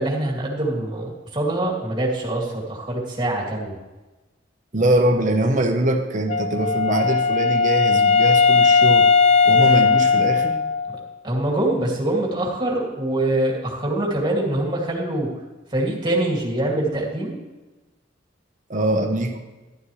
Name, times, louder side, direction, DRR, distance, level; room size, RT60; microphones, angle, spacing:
voice 1, 0.0-3.8 11.2-15.3 15.7-17.4, right 1 dB, 25° right, -3 dB, 2.6 m, -24 dB
voice 2, 4.7-9.1 9.4-10.6 18.7-19.4, right 1 dB, 40° right, 4 dB, 1.2 m, -22 dB
Wind instrument woodwind instrument, 6.3-11.1, left 5 dB, 35° left, 0.4 m, -17 dB
12.5 x 11.5 x 3.3 m, 1.1 s
head